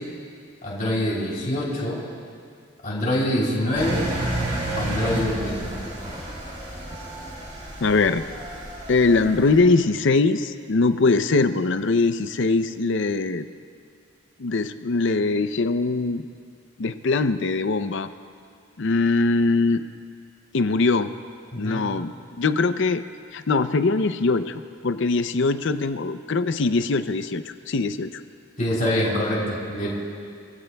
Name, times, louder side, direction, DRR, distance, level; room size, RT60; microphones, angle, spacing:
voice 1, 0.6-2.0 2.8-4.1 4.7-5.8 21.5-21.8 28.6-29.9, left 1 dB, 40° left, -6 dB, 3.1 m, -25 dB
Engine, 3.7-9.6, right 1 dB, 35° right, 2.5 m, -31 dB
voice 2, 7.8-8.2 8.9-13.5 14.4-16.2 16.8-18.1 18.8-19.9 20.5-21.1 21.6-22.1 22.4-23.0 23.3-28.1, left 3 dB, 55° left, 11 dB, 0.5 m, -22 dB
25.5 x 16.5 x 2.3 m, 2.3 s
head